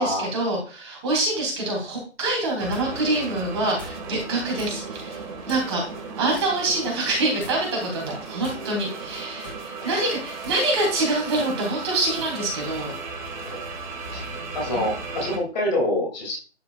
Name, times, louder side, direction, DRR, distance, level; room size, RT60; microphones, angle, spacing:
voice 1, 0.0-5.8 6.2-12.9 14.7-14.8, right 2 dB, 25° right, -1 dB, 3.0 m, -26 dB
sound 1, 2.3-2.9 3.8-4.0 4.6-4.8 5.5-5.8 6.3-6.6 7.4-7.8 8.4-8.9 9.4-9.7 10.3-10.6 11.3-11.5 12.2-12.4, left 3 dB, 10° left, 0.7 m, -43 dB
sound 2, 2.6-15.4, right 4 dB, 40° right, 2.0 m, -36 dB
voice 2, 9.8-10.1 13.4-13.7 14.1-14.2 14.5-16.4, left 1 dB, 40° left, -1 dB, 2.7 m, -26 dB
11.5 x 5.0 x 2.4 m, 0.36 s
figure-of-eight pair, 155°, 35 cm